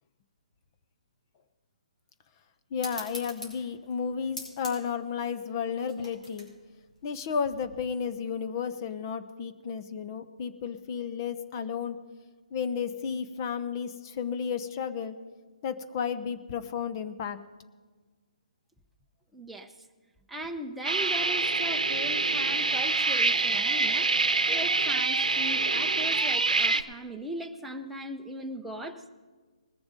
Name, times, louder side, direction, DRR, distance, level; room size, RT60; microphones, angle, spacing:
voice 1, 2.7-6.5 7.0-12.0 12.5-15.1 15.6-17.4, left 6 dB, 35° left, 10 dB, 0.8 m, -33 dB
sound 1, 2.8-7.9, left 1 dB, 85° left, 5.0 m, -45 dB
voice 2, 19.3-19.7 20.3-24.1 24.5-29.1, right 1 dB, ahead, 1 dB, 0.7 m, -39 dB
sound 2, 20.8-26.8, right 3 dB, 85° right, 0.8 m, -26 dB
20.5 x 7.0 x 5.2 m, 1.4 s
hypercardioid pair, 145°, 4 cm